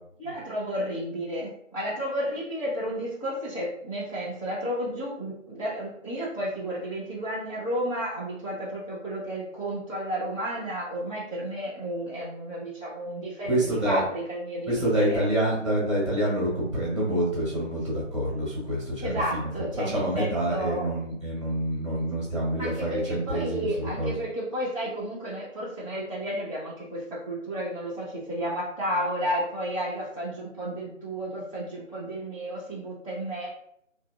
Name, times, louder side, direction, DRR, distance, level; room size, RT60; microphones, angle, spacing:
voice 1, 0.2-15.2 19.0-20.9 22.6-33.5, equal, 25° left, -8 dB, 0.6 m, -32 dB
voice 2, 13.5-14.0 14.7-19.1 19.4-19.5 19.9-24.1, right 1 dB, 25° right, -6 dB, 1.1 m, -27 dB
3.1 x 2.7 x 2.4 m, 0.71 s
figure-of-eight pair, 165°, 38 cm